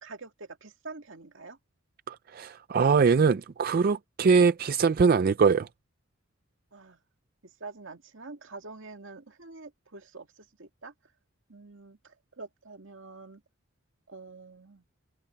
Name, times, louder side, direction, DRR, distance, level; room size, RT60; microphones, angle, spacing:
voice 1, 0.0-1.6 6.7-7.0 7.4-10.9 11.5-13.4 14.1-14.8, right 3 dB, 70° right, 2.2 m, -46 dB
voice 2, 2.1-5.7, right 5 dB, 45° right, 0.4 m, -22 dB
head